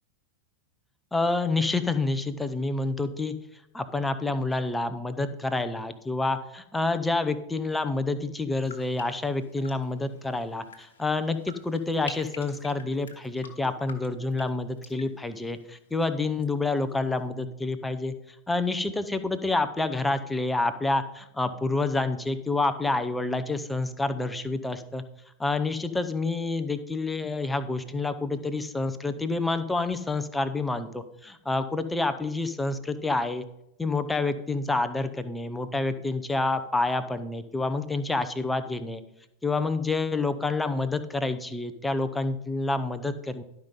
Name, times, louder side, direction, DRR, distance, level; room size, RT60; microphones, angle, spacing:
voice 1, 1.1-3.3 3.7-18.1 18.5-25.0 25.4-33.4 33.8-39.0 39.4-43.4, left 3 dB, 10° left, 10 dB, 0.7 m, -28 dB
Gouttes d'eau, 8.5-16.5 16.7-17.3, left 4 dB, 65° left, 1.4 m, -48 dB
12.0 x 5.2 x 5.3 m, 0.84 s
figure-of-eight pair, 90°, 0 cm